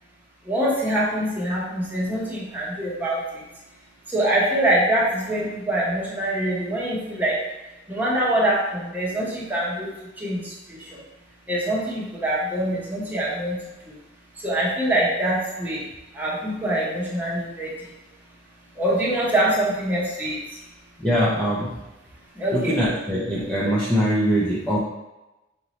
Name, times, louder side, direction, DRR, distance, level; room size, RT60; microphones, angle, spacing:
voice 1, 0.5-3.2 4.1-7.4 7.9-9.9 10.2-10.9 11.5-13.6 14.4-15.8 16.1-17.7 18.8-20.4 22.4-22.8, right 1 dB, 10° right, -6 dB, 1.0 m, -24 dB
voice 2, 21.0-21.8 22.5-24.8, equal, 5° left, -9 dB, 0.6 m, -22 dB
5.1 x 2.8 x 3.0 m, 1.0 s
head